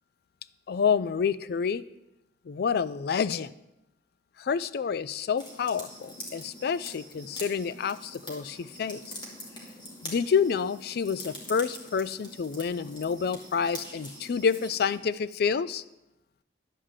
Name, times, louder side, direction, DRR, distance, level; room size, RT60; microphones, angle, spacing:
voice 1, 0.7-1.8 2.5-3.5 4.4-9.0 10.0-15.8, left 6 dB, 60° left, 16 dB, 0.4 m, -28 dB
sound 1, 5.4-15.0, left 1 dB, 25° left, 2.3 m, -44 dB
11.0 x 5.0 x 7.3 m, 0.91 s
head